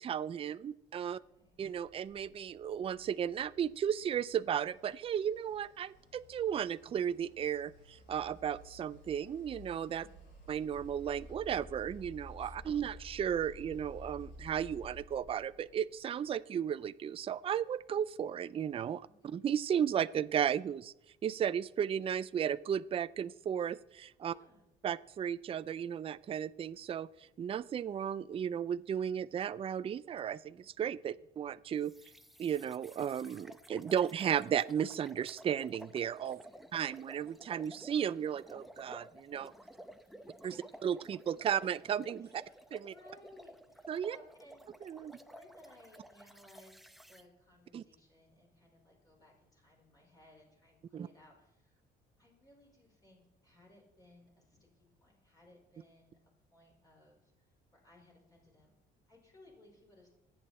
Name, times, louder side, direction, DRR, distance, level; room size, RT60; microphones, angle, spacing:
voice 1, 0.0-1.2 1.6-10.1 10.5-20.9 21.2-24.3 24.8-31.9 32.4-36.4 36.7-39.5 40.4-40.5 40.8-42.4 42.7-42.9 43.9-44.2 44.8-45.1 47.7-47.8 50.9-51.1, right 9 dB, 35° right, 15 dB, 0.4 m, -34 dB
voice 2, 1.1-1.6 10.0-10.4 12.4-12.8 19.0-19.4 24.3-24.6 31.1-31.3 36.2-36.8 39.6-40.6 42.2-44.6 45.1-51.8 52.2-56.2 56.5-57.4 57.7-58.7 59.1-60.1, left 1 dB, 20° left, -2 dB, 5.1 m, -62 dB
sound 1, 1.5-15.9, left 1 dB, 85° left, 6.5 m, -54 dB
sound 2, 31.8-47.2, equal, ahead, 0.9 m, -54 dB
26.0 x 8.8 x 4.3 m, 0.87 s
cardioid pair, 110°, 17 cm